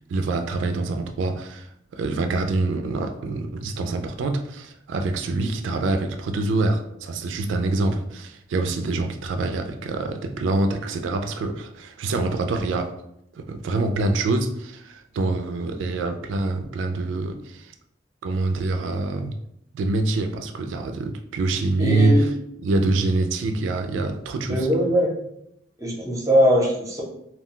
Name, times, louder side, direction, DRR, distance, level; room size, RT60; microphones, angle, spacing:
voice 1, 0.1-13.0 13.3-17.7 18.2-19.3 19.7-22.3 22.6-24.7, right 2 dB, 75° right, 0.3 m, -25 dB
voice 2, 21.8-22.2 24.5-25.1 25.8-27.0, equal, 15° right, 0.7 m, -20 dB
2.3 x 2.2 x 3.7 m
head